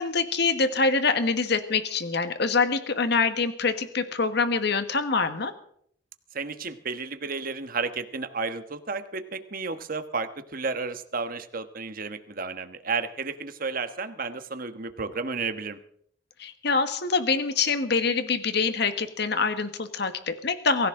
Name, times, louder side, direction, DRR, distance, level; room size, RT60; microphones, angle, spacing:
voice 1, 0.0-5.5 16.4-20.9, left 4 dB, 60° left, 9 dB, 1.4 m, -25 dB
voice 2, 6.3-15.8, right 4 dB, 50° right, 9 dB, 1.3 m, -32 dB
23.5 x 15.5 x 3.8 m, 0.65 s
head